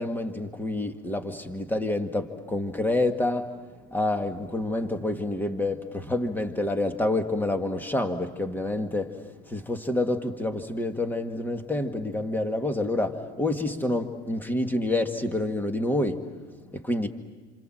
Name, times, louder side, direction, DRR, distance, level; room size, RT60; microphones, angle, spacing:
voice 1, 0.0-3.6 3.9-16.3 16.6-17.1, left 2 dB, 5° left, 6 dB, 1.9 m, -28 dB
28.0 x 27.0 x 7.7 m, 1.3 s
supercardioid pair, 130°, 33 cm